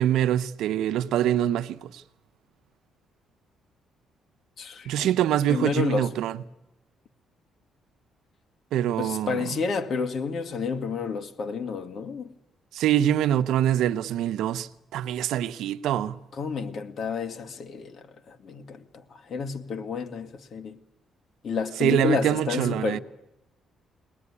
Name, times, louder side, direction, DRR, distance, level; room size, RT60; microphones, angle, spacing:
voice 1, 0.0-1.8 4.9-6.4 8.7-9.4 12.7-14.7 14.9-16.2 21.8-23.0, right 11 dB, 85° right, 0.8 m, -24 dB
voice 2, 4.6-5.1 5.5-6.1 9.0-12.3 16.3-18.8 19.3-20.8 21.4-23.0, left 5 dB, 55° left, 2.0 m, -30 dB
22.5 x 19.5 x 9.8 m
cardioid pair, 100°, 0 cm